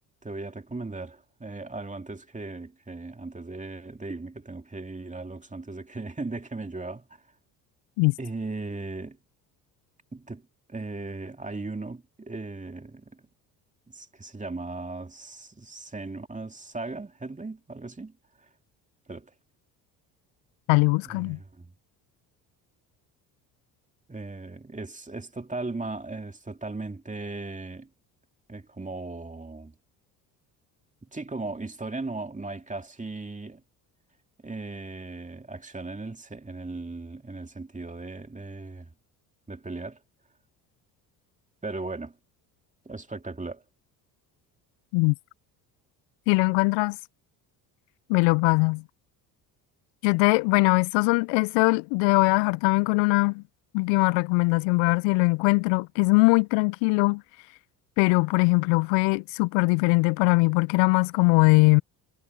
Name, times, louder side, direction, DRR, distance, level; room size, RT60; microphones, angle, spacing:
voice 1, 0.2-7.2 8.2-9.2 10.1-13.2 13.9-18.5 19.1-19.3 21.0-21.7 24.1-27.9 28.5-29.7 31.1-33.6 34.4-38.9 39.5-40.0 41.6-42.2 42.8-43.6, right 3 dB, 15° right, 2.5 m, -37 dB
voice 2, 20.7-21.4 44.9-45.1 46.3-47.0 48.1-48.8 50.0-53.4 53.7-57.2 58.0-61.8, left 29 dB, 70° left, 0.5 m, -21 dB
hypercardioid pair, 60°, 48 cm